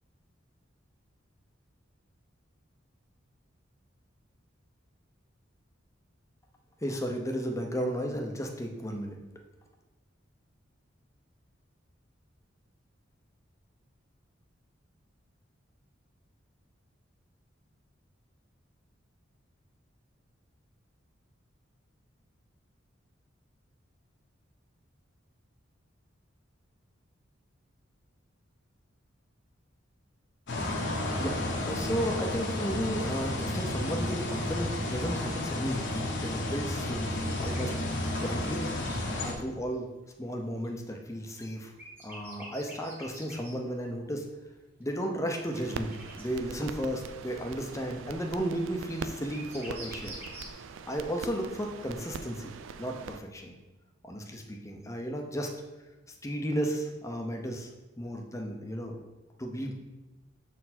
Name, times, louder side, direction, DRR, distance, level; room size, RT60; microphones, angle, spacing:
voice 1, 6.8-9.2 31.1-31.4 31.6-37.8 38.2-38.7 39.2-39.9 40.2-41.7 42.0-44.3 44.8-50.2 50.9-52.5 52.8-53.5 54.0-55.5 56.2-57.7 58.0-59.0 59.4-59.7, equal, 15° left, 2 dB, 0.8 m, -34 dB
sound 1, 30.5-39.3, left 1 dB, 60° left, 1.1 m, -32 dB
sound 2, 35.4-35.5 36.6-39.0 40.6-43.5 44.8-44.9 45.4-46.2 48.3-50.5, right 1 dB, 10° right, 1.3 m, -47 dB
sound 3, 45.5-53.2, right 5 dB, 80° right, 0.4 m, -43 dB
7.0 x 4.5 x 4.2 m, 1.1 s
head